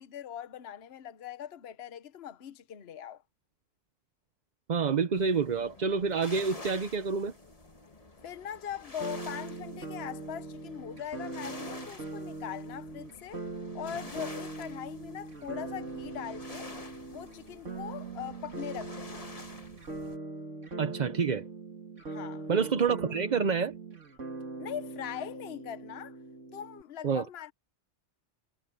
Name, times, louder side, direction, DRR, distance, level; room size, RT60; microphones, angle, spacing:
voice 1, 0.0-3.2 8.2-13.4 13.7-16.7 17.1-19.3 22.1-22.5 22.9-23.0 24.6-26.2 26.5-27.5, left 9 dB, 60° left, 1.1 m, -41 dB
voice 2, 4.7-7.3 20.8-21.5 22.5-23.7 27.0-27.3, right 5 dB, 40° right, 0.8 m, -28 dB
sound 1, 5.1-20.2, left 2 dB, 30° left, 1.7 m, -49 dB
sound 2, 9.0-26.8, right 3 dB, 75° right, 2.9 m, -41 dB
omnidirectional pair, 1.3 m